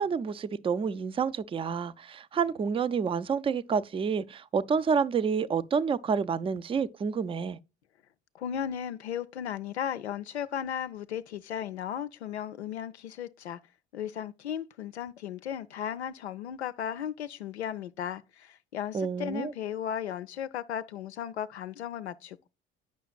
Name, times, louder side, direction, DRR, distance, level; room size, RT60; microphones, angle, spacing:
voice 1, 0.0-7.6 18.9-19.5, right 6 dB, 15° right, 0.4 m, -29 dB
voice 2, 8.3-13.6 13.9-22.5, left 9 dB, 85° left, 0.5 m, -35 dB
9.3 x 5.7 x 2.3 m
figure-of-eight pair, 55°, 32 cm